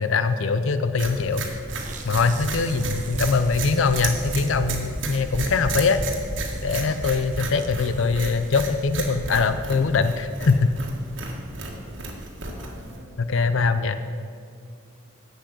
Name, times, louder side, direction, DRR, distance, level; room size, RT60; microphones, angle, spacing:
voice 1, 0.0-1.5 2.0-6.0 6.6-10.7 13.2-14.0, left 4 dB, 70° left, 11 dB, 0.5 m, -22 dB
sound 1, 1.0-13.0, right 2 dB, 65° right, 1.7 m, -32 dB
sound 2, 1.7-11.2, right 5 dB, 35° right, 1.0 m, -46 dB
voice 2, 5.5-5.9 11.7-12.1 12.4-13.1, equal, 20° left, -4 dB, 2.7 m, -46 dB
10.0 x 8.1 x 6.2 m, 2.4 s
head